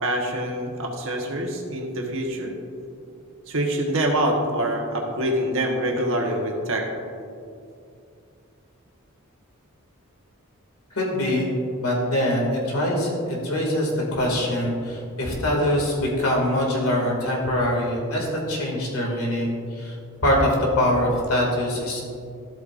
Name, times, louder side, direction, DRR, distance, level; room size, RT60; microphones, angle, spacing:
voice 1, 0.0-2.5 3.5-6.9, right 1 dB, 65° right, 1 dB, 1.3 m, -25 dB
voice 2, 11.0-11.5 11.8-19.9 20.2-22.0, left 1 dB, 85° left, -2 dB, 2.4 m, -23 dB
13.5 x 8.3 x 2.6 m, 2.4 s
head